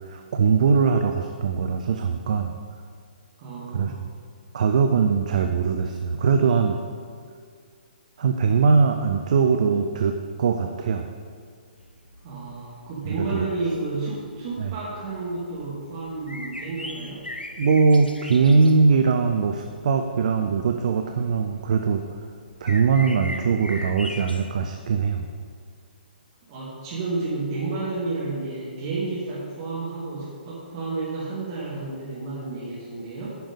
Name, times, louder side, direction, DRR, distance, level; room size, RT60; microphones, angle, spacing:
voice 1, 0.1-2.5 3.7-3.9 4.5-6.8 8.2-11.1 13.2-13.5 14.6-14.7 17.6-22.0 22.6-25.3, right 5 dB, 50° right, 5 dB, 0.6 m, -21 dB
voice 2, 3.4-4.0 12.2-17.3 26.5-33.3, right 3 dB, 30° right, -8 dB, 2.2 m, -31 dB
sound 1, 11.8-24.5, left 1 dB, 85° left, 0.8 m, -41 dB
10.5 x 5.3 x 5.3 m, 2.1 s
figure-of-eight pair, 125°, 5 cm